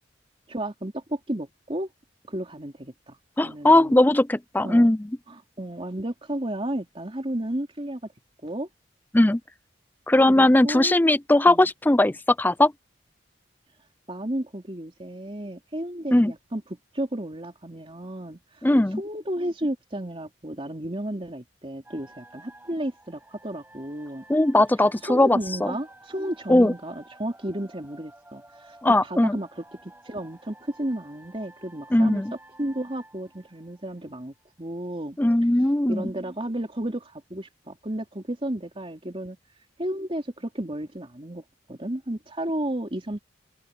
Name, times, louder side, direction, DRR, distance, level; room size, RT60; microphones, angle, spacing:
voice 1, 0.5-1.9 2.3-3.2 3.4-4.0 4.6-4.9 5.3-8.0 8.4-8.7 10.3-11.0 11.5-11.7 14.1-18.4 19.0-24.2 25.0-28.8 29.0-32.2 32.6-35.2 35.8-39.4 39.8-41.4 41.7-43.2, right 1 dB, 30° right, 3.2 m, -33 dB
voice 2, 3.4-5.1 9.1-9.4 10.1-12.7 16.1-16.3 18.6-19.0 24.3-25.7 26.5-26.7 28.8-29.4 31.9-32.3 35.2-36.1, left 1 dB, 10° left, 0.4 m, -19 dB
sound 1, 21.8-34.4, right 1 dB, 10° right, 6.7 m, -52 dB
open air
head